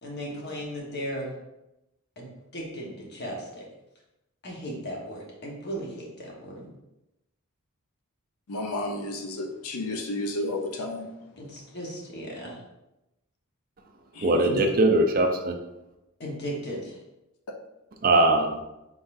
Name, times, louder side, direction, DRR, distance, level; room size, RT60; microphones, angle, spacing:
voice 1, 0.0-1.4 2.2-3.6 4.4-6.7 11.4-12.6 16.2-17.0, equal, 50° left, -2 dB, 1.2 m, -36 dB
voice 2, 8.5-11.1 14.1-14.7, left 2 dB, 70° left, 3 dB, 0.6 m, -32 dB
voice 3, 14.2-15.6 18.0-18.6, right 2 dB, 40° right, 5 dB, 0.4 m, -21 dB
4.8 x 3.9 x 2.6 m, 0.93 s
head